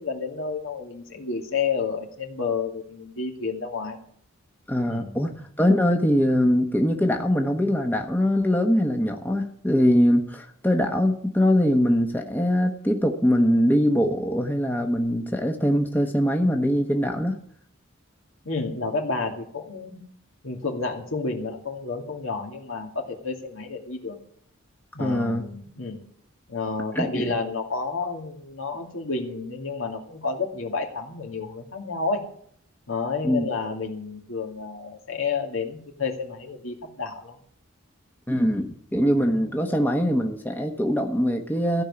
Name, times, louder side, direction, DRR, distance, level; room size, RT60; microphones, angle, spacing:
voice 1, 0.0-4.0 4.9-5.1 18.4-20.0 20.4-24.2 24.9-26.0 26.5-32.2 32.9-37.4, left 4 dB, 75° left, 2 dB, 2.4 m, -30 dB
voice 2, 4.7-17.3 25.0-25.4 26.9-27.4 33.2-33.5 38.3-41.8, equal, 10° left, 3 dB, 1.1 m, -22 dB
15.0 x 5.5 x 9.7 m, 0.63 s
head